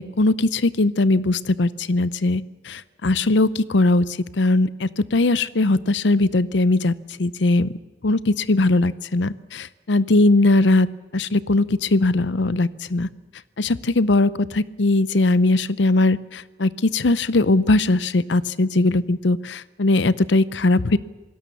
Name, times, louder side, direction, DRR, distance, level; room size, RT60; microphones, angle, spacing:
voice 1, 0.0-4.1 4.3-6.9 7.2-7.7 8.0-10.9 11.1-13.1 13.6-21.0, left 2 dB, 75° left, 18 dB, 0.7 m, -20 dB
26.5 x 18.5 x 7.0 m, 1.2 s
head